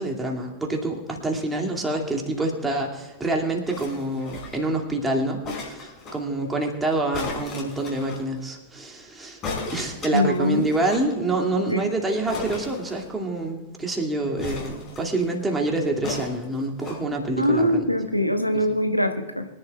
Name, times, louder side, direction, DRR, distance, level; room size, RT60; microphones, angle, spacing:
voice 1, 0.0-9.4 9.7-17.9, right 2 dB, 10° right, 0 dB, 2.5 m, -27 dB
sound 1, 3.7-4.7 5.4-6.2 7.1-8.2 9.4-11.1 11.4-11.5 11.7-11.8 12.3-13.4 14.4-15.3 16.0-17.0 17.7-17.8, left 3 dB, 30° left, 5.1 m, -35 dB
voice 2, 10.1-10.6 11.7-11.8 17.4-19.5, left 1 dB, 90° left, 6 dB, 1.1 m, -22 dB
25.0 x 11.0 x 2.4 m, 1.2 s
figure-of-eight pair, 90°, 0 cm